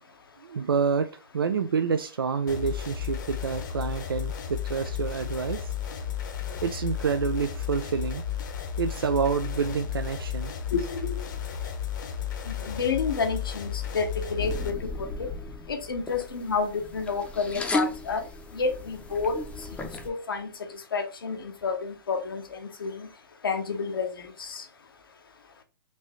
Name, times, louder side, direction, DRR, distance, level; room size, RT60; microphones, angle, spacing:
voice 1, 0.4-1.1 1.3-5.7 6.6-8.2 8.8-10.5, right 6 dB, 90° right, 0.4 m, -28 dB
sound 1, 2.5-14.7, left 9 dB, 60° left, 0.9 m, -33 dB
voice 2, 10.7-11.2 12.4-15.3 15.7-18.2 18.5-19.4 20.0-20.5 20.9-23.1 23.4-24.6, left 5 dB, 80° left, 0.9 m, -30 dB
sound 2, 14.4-20.1, left 2 dB, 10° left, 0.6 m, -35 dB
4.4 x 2.7 x 3.0 m
hypercardioid pair, 130°, 12 cm